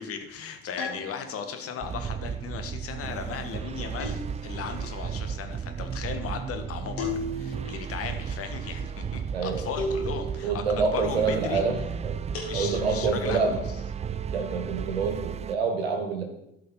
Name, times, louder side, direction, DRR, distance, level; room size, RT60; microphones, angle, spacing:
voice 1, 0.0-11.6 12.4-13.6, left 7 dB, 50° left, 7 dB, 1.5 m, -36 dB
sound 1, 0.8-1.6 4.0-4.8 7.0-7.8 9.8-10.6 12.3-13.2, left 2 dB, 80° left, 2.3 m, -35 dB
sound 2, 1.8-15.5, right 7 dB, 20° right, 0.4 m, -34 dB
voice 2, 9.3-9.7 10.4-12.1 12.5-13.6 14.3-16.2, right 4 dB, 90° right, 4 dB, 1.6 m, -27 dB
13.0 x 5.3 x 4.2 m, 0.84 s
hypercardioid pair, 65°, 30 cm